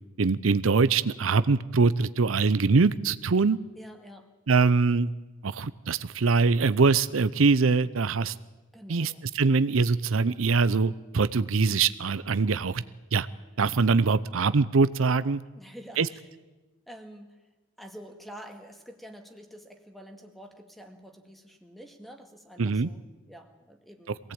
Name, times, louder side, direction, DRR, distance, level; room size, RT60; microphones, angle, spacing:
voice 1, 0.2-3.6 4.5-5.1 5.4-8.3 8.9-12.8 13.1-13.3 13.6-15.4 16.0-16.1 22.6-22.9, right 4 dB, 85° right, 15 dB, 0.7 m, -23 dB
voice 2, 3.7-4.3 8.7-9.3 15.5-16.3 16.9-17.5 17.8-24.2, equal, ahead, 5 dB, 1.9 m, -47 dB
23.5 x 17.5 x 8.8 m, 1.1 s
head